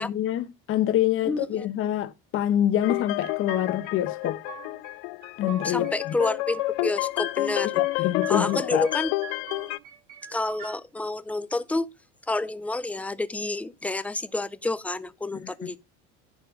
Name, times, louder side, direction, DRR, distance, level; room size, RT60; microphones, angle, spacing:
voice 1, 0.0-4.4 5.4-6.1 7.7-8.9 15.3-15.7, left 11 dB, 45° left, 1.1 m, -26 dB
voice 2, 1.2-1.7 5.6-7.8 8.3-9.1 10.3-11.9 12.3-15.8, left 2 dB, 5° left, 0.4 m, -29 dB
sound 1, 2.8-9.8, left 21 dB, 90° left, 0.5 m, -29 dB
sound 2, 3.0-3.9 4.2-4.9 5.2-6.7 7.0-8.0 8.2-9.0 9.2-10.7, right 8 dB, 65° right, 4.5 m, -43 dB
10.5 x 4.3 x 5.1 m
cardioid pair, 140°, 30 cm